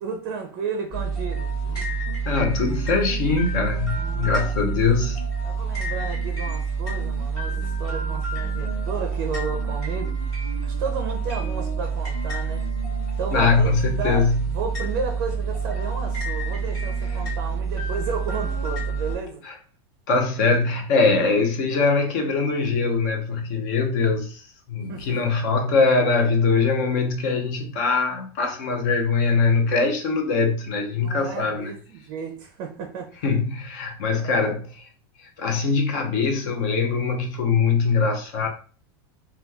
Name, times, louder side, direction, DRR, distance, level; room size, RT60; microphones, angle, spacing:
voice 1, 0.0-1.6 4.2-4.5 5.4-10.1 10.6-12.6 13.2-19.4 24.9-25.2 31.0-33.1 34.2-34.5, right 5 dB, 30° right, 0.5 m, -33 dB
sound 1, 0.9-19.2, right 5 dB, 30° left, 1.2 m, -27 dB
voice 2, 2.3-5.2 13.3-14.5 19.4-19.5 20.1-24.4 24.7-31.7 33.2-34.9 35.4-38.5, left 4 dB, 45° left, 0.7 m, -22 dB
2.9 x 2.3 x 3.4 m
supercardioid pair, 180°, 13 cm